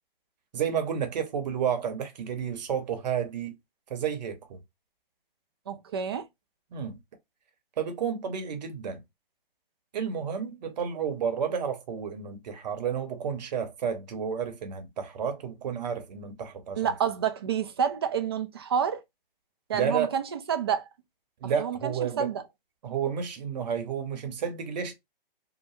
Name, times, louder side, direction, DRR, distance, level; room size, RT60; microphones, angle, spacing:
voice 1, 0.5-3.6 3.9-4.6 6.7-7.0 7.8-9.0 9.9-16.9 19.7-20.2 21.4-22.3 22.8-24.9, right 7 dB, 45° right, 0.9 m, -31 dB
voice 2, 5.7-6.3 16.7-19.0 19.7-20.9 21.6-22.4, right 8 dB, 25° right, 0.3 m, -29 dB
2.8 x 2.1 x 3.2 m
hypercardioid pair, 140°, 29 cm